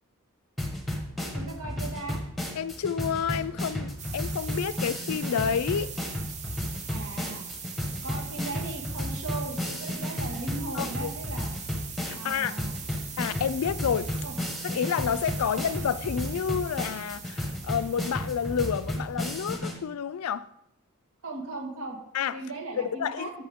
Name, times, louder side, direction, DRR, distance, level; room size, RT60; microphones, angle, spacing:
sound 1, 0.6-19.8, left 1 dB, ahead, 1.2 m, -33 dB
voice 1, 1.3-2.2 6.9-7.4 8.0-11.5 12.1-12.7 14.2-14.3 21.2-22.0 22.3-23.4, right 3 dB, 70° right, 1.8 m, -37 dB
voice 2, 2.6-5.9 10.7-11.1 12.0-12.6 13.2-14.1 14.6-20.5 22.1-22.4 22.8-23.4, left 7 dB, 85° left, 0.4 m, -29 dB
sound 2, 4.0-19.1, right 6 dB, 30° right, 0.8 m, -42 dB
13.0 x 5.7 x 3.6 m
head